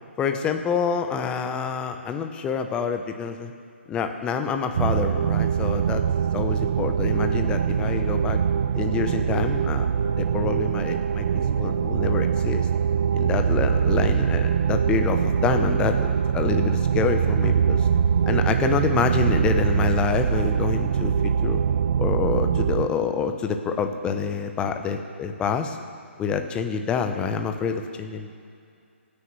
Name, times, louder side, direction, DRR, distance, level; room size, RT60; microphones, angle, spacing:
voice 1, 0.2-3.5 3.9-6.0 6.3-8.4 8.8-9.9 10.1-12.7 13.1-17.9 18.3-21.6 22.0-25.8 26.2-28.3, left 6 dB, 15° left, 6 dB, 0.8 m, -27 dB
sound 1, 4.7-22.9, right 7 dB, 55° right, 0.4 m, -23 dB
25.0 x 9.8 x 3.3 m, 2.4 s
hypercardioid pair, 140°, 7 cm